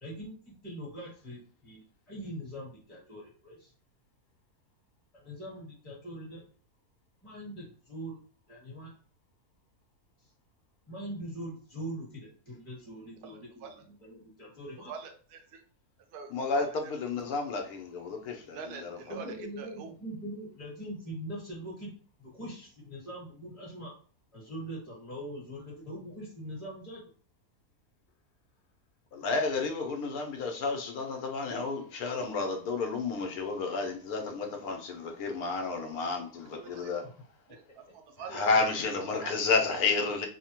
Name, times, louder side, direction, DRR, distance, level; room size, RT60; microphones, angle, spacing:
voice 1, 0.0-3.7 5.1-6.4 7.2-8.2 8.5-8.9 10.9-14.9 19.1-21.9 22.2-23.9 24.3-27.0, right 1 dB, 25° left, 1.2 m, -42 dB
voice 2, 13.2-13.8 14.9-15.6 16.1-16.9 18.5-19.9 36.5-37.0 37.5-37.6 37.9-38.4 39.1-39.4, right 5 dB, 90° right, 1.1 m, -44 dB
voice 3, 16.3-19.2 29.1-37.0 38.3-40.3, left 4 dB, 80° left, 1.1 m, -31 dB
3.1 x 2.1 x 2.9 m
omnidirectional pair, 1.6 m